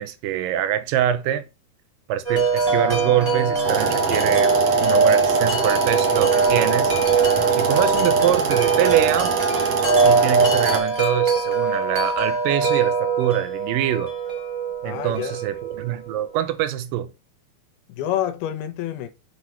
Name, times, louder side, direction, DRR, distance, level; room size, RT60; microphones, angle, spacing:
voice 1, 0.0-1.5 2.1-4.5 4.8-6.9 7.5-9.3 10.0-14.1 14.8-17.1, right 12 dB, 80° right, 2.2 m, -24 dB
Wind chime, 2.2-16.2, right 4 dB, 25° right, 0.8 m, -22 dB
Bowed string instrument, 2.6-9.3, left 2 dB, ahead, 1.6 m, -39 dB
sound 1, 3.6-10.8, right 4 dB, 60° right, 1.8 m, -23 dB
voice 2, 14.8-15.4 17.9-19.1, left 11 dB, 85° left, 2.8 m, -28 dB
8.2 x 4.0 x 4.4 m
omnidirectional pair, 4.4 m